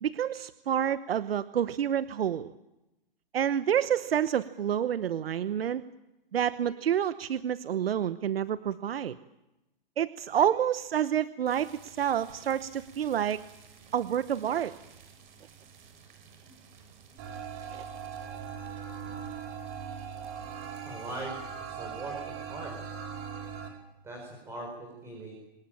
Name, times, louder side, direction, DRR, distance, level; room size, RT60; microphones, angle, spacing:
voice 1, 0.0-2.5 3.3-5.8 6.3-9.2 10.0-13.4 13.9-14.8 17.7-17.8, right 9 dB, 80° right, 14 dB, 1.0 m, -28 dB
sound 1, 11.5-21.2, right 6 dB, 55° right, 6.7 m, -55 dB
sound 2, 17.2-23.7, right 7 dB, 30° right, 5.5 m, -40 dB
voice 2, 20.8-22.7 24.0-25.3, right 2 dB, 10° right, 0 dB, 4.8 m, -41 dB
26.0 x 19.5 x 8.9 m, 0.95 s
hypercardioid pair, 165°, 29 cm